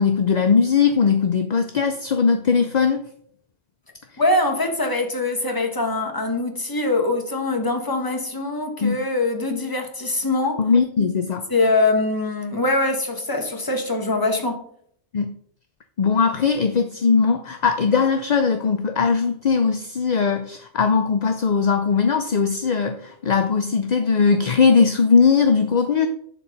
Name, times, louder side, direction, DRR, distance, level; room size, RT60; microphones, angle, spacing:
voice 1, 0.0-3.0 8.8-9.0 10.6-11.4 15.1-15.3 16.0-26.1, left 5 dB, 45° left, 0.6 m, -19 dB
voice 2, 4.2-10.7 11.5-14.6, left 2 dB, 20° left, 1.2 m, -23 dB
11.0 x 4.5 x 5.3 m
omnidirectional pair, 1.3 m